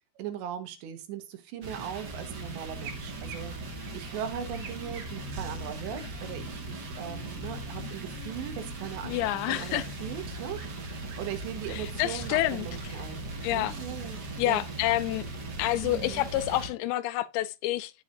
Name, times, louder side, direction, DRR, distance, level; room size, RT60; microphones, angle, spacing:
voice 1, 0.2-3.6 3.9-13.2 13.5-14.2 14.5-14.7 15.8-16.3, right 9 dB, 85° right, 3.6 m, -39 dB
sound 1, 1.6-16.7, right 2 dB, 40° right, 1.6 m, -39 dB
sound 2, 2.3-14.2, right 4 dB, 60° right, 3.3 m, -49 dB
sound 3, 4.4-12.3, left 12 dB, 75° left, 3.3 m, -49 dB
voice 2, 9.0-9.9 11.7-12.7 13.4-13.7 14.4-15.3 15.6-17.9, left 16 dB, 90° left, 2.9 m, -28 dB
15.5 x 5.6 x 2.6 m
omnidirectional pair, 5.0 m